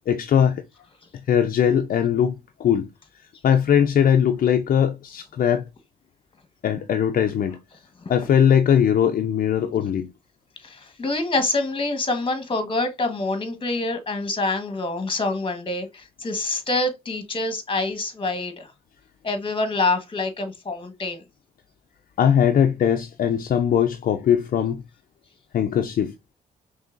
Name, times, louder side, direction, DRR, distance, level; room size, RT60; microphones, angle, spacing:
voice 1, 0.1-0.6 1.3-2.9 3.4-5.6 6.6-7.6 8.1-10.1 22.2-24.8 25.5-26.1, left 8 dB, 60° left, 0.5 m, -20 dB
voice 2, 10.6-18.7 19.2-21.2, left 2 dB, 35° left, 1.3 m, -26 dB
5.3 x 3.3 x 2.5 m
cardioid pair, 75°, 16 cm